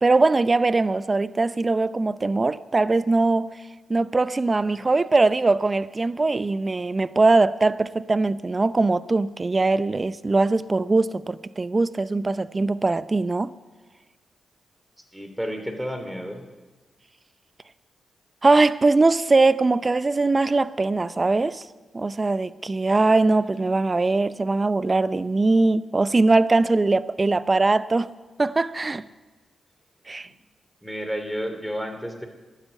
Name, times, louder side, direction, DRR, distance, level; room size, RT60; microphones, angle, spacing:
voice 1, 0.0-3.5 3.9-13.5 18.4-21.7 21.9-28.1 28.4-29.1 30.1-30.3, right 3 dB, 35° right, 0.6 m, -21 dB
voice 2, 15.1-16.4 30.8-32.3, equal, ahead, 2.9 m, -31 dB
12.0 x 9.2 x 9.5 m
supercardioid pair, 40°, 0 cm